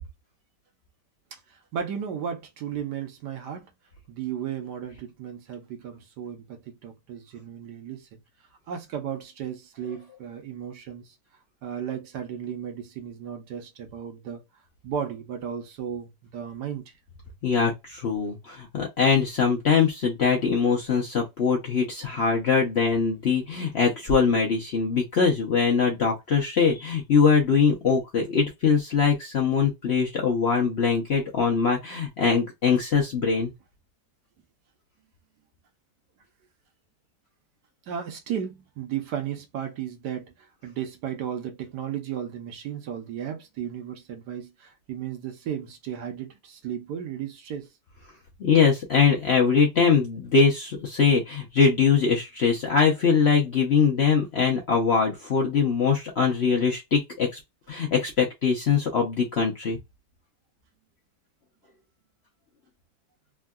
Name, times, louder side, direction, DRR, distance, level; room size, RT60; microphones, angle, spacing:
voice 1, 1.3-3.7 4.1-8.2 8.7-11.1 11.6-14.4 14.8-16.9 37.9-47.7, right 8 dB, 75° right, 1.4 m, -35 dB
voice 2, 17.4-33.5 48.4-57.3 57.7-59.8, left 5 dB, 55° left, 0.7 m, -22 dB
3.5 x 2.2 x 2.3 m
omnidirectional pair, 1.8 m